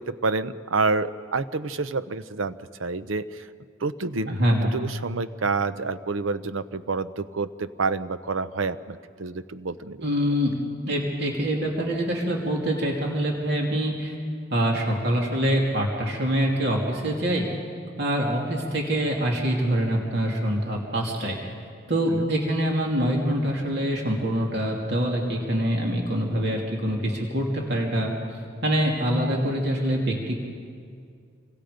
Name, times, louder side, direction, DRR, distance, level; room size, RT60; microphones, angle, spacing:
voice 1, 0.0-3.5 3.8-4.4 4.7-10.0 22.1-22.3, right 4 dB, 85° right, 13 dB, 0.8 m, -28 dB
voice 2, 4.3-4.7 10.0-10.5 10.9-14.1 14.5-17.5 18.0-21.4 21.9-28.1 28.6-30.3, equal, 55° right, -1 dB, 2.8 m, -25 dB
27.5 x 24.5 x 5.2 m, 2.2 s
head